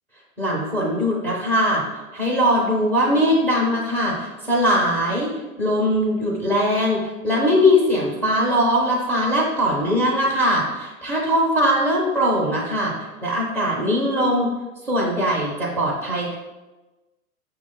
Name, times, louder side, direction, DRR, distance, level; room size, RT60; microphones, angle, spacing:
voice 1, 0.4-1.8 2.1-5.3 5.6-12.9 13.2-14.5 14.8-16.4, equal, 5° right, -6 dB, 0.4 m, -21 dB
6.1 x 2.2 x 3.7 m, 1.1 s
figure-of-eight pair, 105°, 43 cm